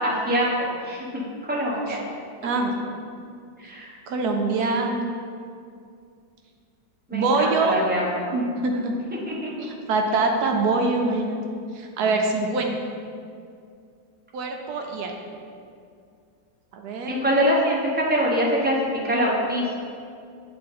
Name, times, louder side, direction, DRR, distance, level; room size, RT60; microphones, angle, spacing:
voice 1, 0.0-2.0 3.6-3.9 7.1-8.3 9.3-9.5 17.1-18.8 19.0-19.8, equal, 10° right, -4 dB, 0.4 m, -24 dB
voice 2, 2.4-2.7 4.1-5.1 7.1-7.7 8.3-8.9 9.6-11.4 11.7-12.7 14.3-15.1 16.7-17.1, right 3 dB, 70° right, 2 dB, 1.1 m, -24 dB
8.7 x 3.7 x 3.7 m, 2.4 s
omnidirectional pair, 1.9 m